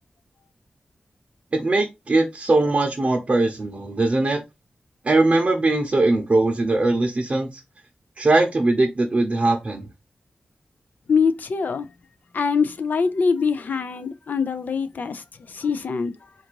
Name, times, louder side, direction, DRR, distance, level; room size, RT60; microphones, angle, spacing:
voice 1, 1.5-4.4 5.0-7.6 8.2-9.8, right 2 dB, 45° right, 0.7 m, -20 dB
voice 2, 11.1-11.9 12.3-16.1, left 5 dB, 75° left, 0.5 m, -23 dB
3.9 x 2.5 x 4.5 m
wide cardioid pair, 85°, 3 cm